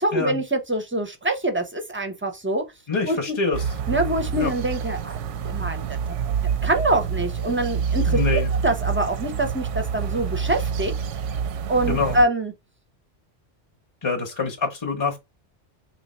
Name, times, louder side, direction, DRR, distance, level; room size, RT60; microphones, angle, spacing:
voice 1, 0.0-2.6 3.1-3.4 3.9-6.2 6.6-10.9 11.7-12.5, right 1 dB, 20° right, 0.4 m, -25 dB
voice 2, 2.9-3.7 4.4-4.5 8.1-8.5 11.9-12.2 14.0-15.2, left 4 dB, 30° left, 0.6 m, -25 dB
sound 1, 3.5-12.3, right 6 dB, 85° right, 0.9 m, -27 dB
3.1 x 3.0 x 4.1 m
omnidirectional pair, 1.2 m